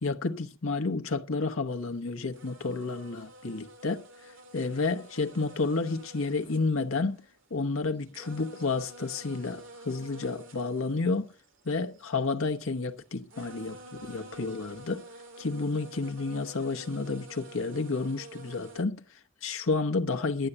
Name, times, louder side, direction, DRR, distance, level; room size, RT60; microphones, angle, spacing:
voice 1, 0.0-7.2 7.5-11.3 11.6-15.0 15.4-20.5, left 3 dB, 80° left, 1.0 m, -31 dB
sound 1, 1.8-2.0 2.3-7.4 7.8-12.2 13.0-13.1 13.3-18.8, right 1 dB, 70° right, 2.1 m, -49 dB
11.5 x 9.8 x 7.9 m
head